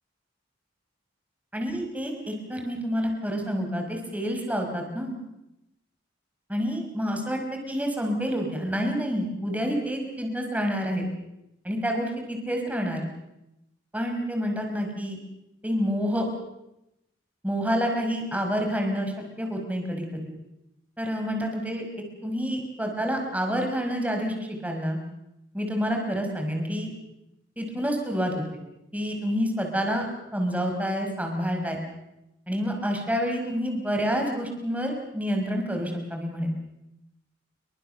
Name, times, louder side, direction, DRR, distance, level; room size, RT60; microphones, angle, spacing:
voice 1, 1.5-5.1 6.5-7.4 7.7-11.1 11.6-13.1 13.9-15.2 15.6-16.3 17.4-20.2 21.0-21.8 22.2-25.0 25.5-26.9 27.6-28.4 28.9-30.1 30.3-31.8 32.5-36.5, equal, 10° right, 3 dB, 5.3 m, -28 dB
28.5 x 24.0 x 6.7 m, 0.88 s
head